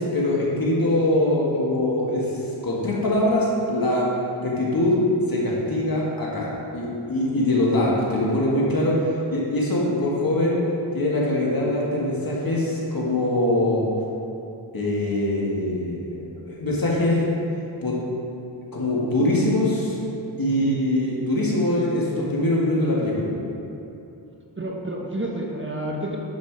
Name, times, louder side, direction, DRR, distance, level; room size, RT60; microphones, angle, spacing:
voice 1, 0.0-2.3 2.6-4.1 4.4-5.0 5.3-9.0 9.3-10.6 10.9-13.8 14.7-17.2 17.8-18.0 18.7-19.9 20.4-23.3, left 1 dB, 45° left, -5 dB, 2.3 m, -23 dB
voice 2, 24.6-26.2, right 1 dB, 25° right, -1 dB, 1.1 m, -30 dB
9.6 x 6.1 x 5.0 m, 2.8 s
wide cardioid pair, 75°, 47 cm